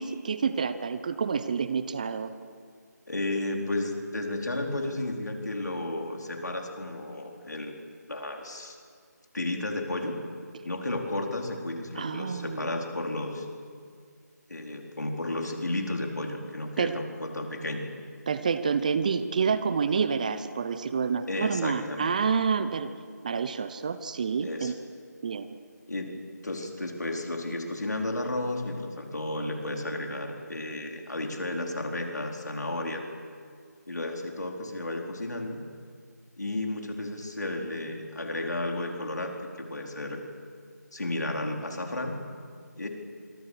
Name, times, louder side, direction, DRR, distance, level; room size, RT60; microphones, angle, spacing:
voice 1, 0.0-2.3 12.0-12.7 16.8-16.9 18.3-22.9 23.2-24.7 25.2-25.5, right 6 dB, 25° right, 12 dB, 0.8 m, -28 dB
voice 2, 3.1-7.7 8.1-8.8 9.3-10.1 10.6-13.5 14.5-17.9 21.3-22.1 24.4-24.7 25.9-26.1 26.4-33.0 33.9-35.6 36.4-40.2 40.9-42.1 42.8-42.9, left 2 dB, 70° left, 2 dB, 4.4 m, -33 dB
26.5 x 23.5 x 6.5 m, 2.1 s
figure-of-eight pair, 160°, 10 cm